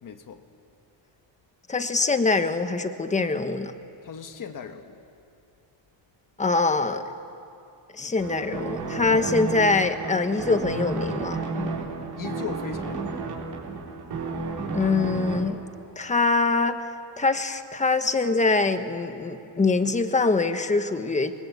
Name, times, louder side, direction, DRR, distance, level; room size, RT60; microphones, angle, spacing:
voice 1, 0.0-0.4 4.0-5.0 12.2-13.2, left 6 dB, 40° left, 7 dB, 1.6 m, -37 dB
voice 2, 1.7-3.7 6.4-7.0 7.9-11.4 14.7-15.6 16.0-16.8 17.2-21.3, left 3 dB, 15° left, 8 dB, 1.2 m, -24 dB
sound 1, 8.2-15.4, right 3 dB, 50° right, 4.4 m, -32 dB
29.0 x 23.5 x 8.4 m, 2.6 s
cardioid pair, 165°, 47 cm